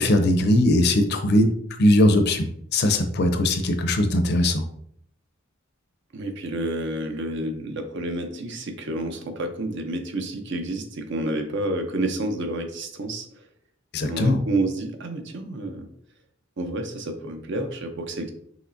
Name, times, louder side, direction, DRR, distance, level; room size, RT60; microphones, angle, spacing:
voice 1, 0.0-1.5 1.8-4.6 13.9-14.4, left 1 dB, 55° left, 7 dB, 0.6 m, -20 dB
voice 2, 6.1-13.3 14.0-15.9 16.6-18.3, right 1 dB, 60° right, 5 dB, 0.7 m, -29 dB
5.8 x 3.1 x 2.6 m, 0.68 s
head